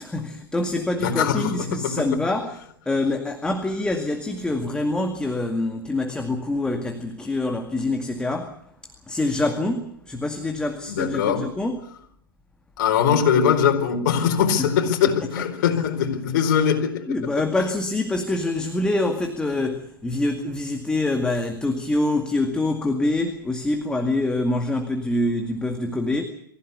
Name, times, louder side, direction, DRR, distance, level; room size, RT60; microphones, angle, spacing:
voice 1, 0.0-2.6 2.9-8.6 9.1-11.8 14.6-15.8 17.1-26.2, left 2 dB, 5° left, 2.1 m, -25 dB
voice 2, 1.0-2.1 10.9-11.5 12.8-17.3, left 7 dB, 50° left, 4.5 m, -22 dB
25.0 x 16.0 x 8.3 m
figure-of-eight pair, 105°, 12 cm